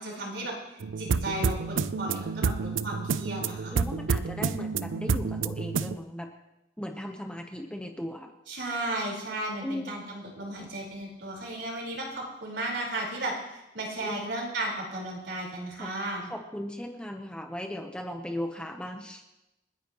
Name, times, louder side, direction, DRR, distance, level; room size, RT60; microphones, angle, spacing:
voice 1, 0.0-3.8 8.5-16.3, right 1 dB, 65° right, -2 dB, 4.5 m, -35 dB
sound 1, 0.8-5.9, right 5 dB, 85° right, 0.5 m, -29 dB
voice 2, 3.7-6.3 6.8-8.3 9.6-10.1 14.0-14.2 15.8-15.9 16.3-19.2, left 1 dB, 5° left, 3 dB, 0.9 m, -37 dB
29.5 x 10.0 x 3.1 m, 0.95 s
head